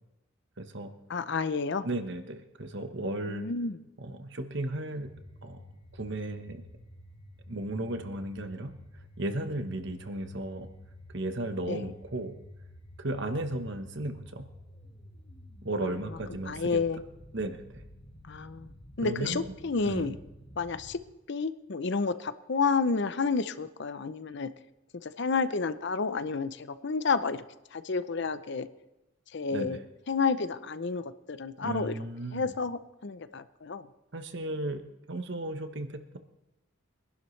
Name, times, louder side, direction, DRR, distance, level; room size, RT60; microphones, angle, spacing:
voice 1, 0.6-0.9 1.8-3.5 4.0-5.1 5.4-5.6 5.9-6.6 7.5-8.8 9.2-10.7 11.1-12.4 13.0-14.5 15.6-16.8 17.3-17.8 19.0-19.5 19.8-20.1 29.5-29.8 31.6-32.5 34.1-34.8 35.1-36.2, right 1 dB, 55° right, 8 dB, 1.2 m, -35 dB
voice 2, 1.1-1.9 3.3-3.8 11.7-11.8 16.4-17.0 18.3-18.7 19.0-20.2 20.6-21.0 21.3-24.5 24.9-27.4 27.7-28.7 29.3-29.8 30.1-32.0 32.3-33.9, left 4 dB, 55° left, 13 dB, 0.6 m, -30 dB
sound 1, 5.0-21.0, left 1 dB, 25° left, 1.5 m, -51 dB
23.0 x 11.5 x 3.3 m, 0.94 s
head